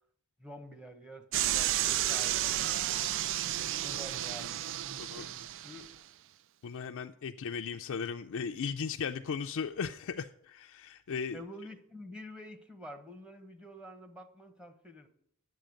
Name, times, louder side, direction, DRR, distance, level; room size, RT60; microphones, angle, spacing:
voice 1, 0.4-2.8 3.8-6.1 11.3-15.1, equal, 5° right, 4 dB, 1.0 m, -48 dB
sound 1, 1.3-5.9, right 12 dB, 55° right, 0.3 m, -32 dB
voice 2, 6.6-11.4, left 6 dB, 65° left, 5 dB, 0.4 m, -37 dB
10.5 x 7.6 x 6.4 m, 0.72 s
head